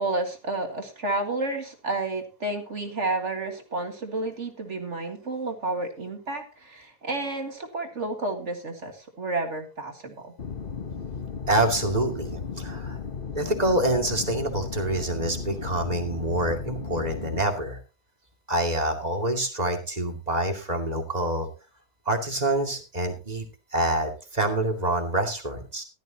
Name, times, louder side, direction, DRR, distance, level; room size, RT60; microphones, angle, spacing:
voice 1, 0.0-10.3, right 2 dB, 45° right, 4 dB, 2.2 m, -31 dB
sound 1, 10.4-17.4, left 5 dB, 40° left, 1.0 m, -35 dB
voice 2, 11.5-13.0 13.3-17.8 18.5-21.5 22.1-23.4 23.7-25.8, right 1 dB, 25° right, 4 dB, 2.5 m, -26 dB
15.5 x 12.5 x 2.9 m, 0.32 s
omnidirectional pair, 1.7 m